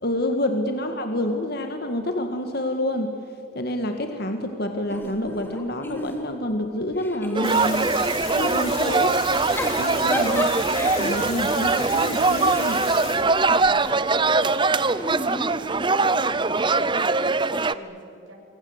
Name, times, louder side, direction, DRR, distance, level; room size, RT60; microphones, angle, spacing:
voice 1, 0.0-3.1 3.5-7.9 8.4-9.2 9.8-10.5 10.8-12.8, left 1 dB, 50° left, 5 dB, 1.9 m, -27 dB
Giggle / Chuckle chortle, 4.9-6.5 6.9-8.3 9.3-13.8 14.9-16.3, equal, 10° left, 2.8 m, -34 dB
sound 1, 7.3-17.7, right 3 dB, 25° right, 0.7 m, -22 dB
sound 2, 7.4-13.2, left 4 dB, 90° left, 6.7 m, -34 dB
voice 2, 13.5-18.3, equal, 70° right, 0 dB, 7.1 m, -45 dB
26.0 x 25.0 x 8.1 m, 2.4 s
head